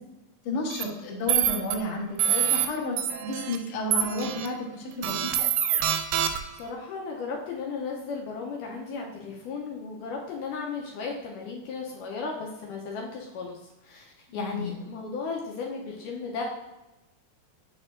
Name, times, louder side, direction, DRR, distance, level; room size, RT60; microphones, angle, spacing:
voice 1, 0.4-5.3 14.3-14.8, left 1 dB, 60° left, -2 dB, 1.6 m, -32 dB
sound 1, 0.7-0.8 1.3-1.7 2.2-2.7 3.0-3.6 3.9-4.5 5.0-6.6, right 10 dB, 80° right, 2.0 m, -25 dB
voice 2, 6.6-13.6 13.8-16.4, left 4 dB, 80° left, -1 dB, 2.2 m, -35 dB
8.7 x 4.4 x 2.5 m, 0.98 s
omnidirectional pair, 4.0 m